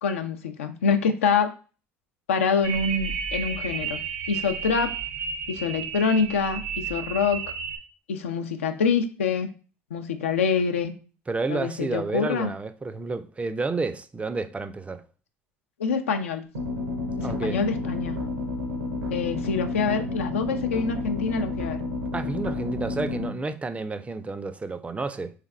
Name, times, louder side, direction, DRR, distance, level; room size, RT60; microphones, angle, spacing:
voice 1, 0.0-1.5 2.3-4.0 4.3-4.9 5.5-7.4 8.1-9.5 9.9-10.9 11.5-12.5 15.8-16.4 17.2-18.2 19.1-21.8, left 5 dB, 85° left, 0.4 m, -25 dB
sound 1, 2.6-7.8, right 7 dB, 70° right, 0.6 m, -32 dB
voice 2, 11.3-15.0 17.2-17.6 22.1-25.3, right 3 dB, 20° right, 0.4 m, -30 dB
sound 2, 16.5-23.3, left 2 dB, 90° right, 0.9 m, -30 dB
3.4 x 3.2 x 2.4 m
hypercardioid pair, 70°, 7 cm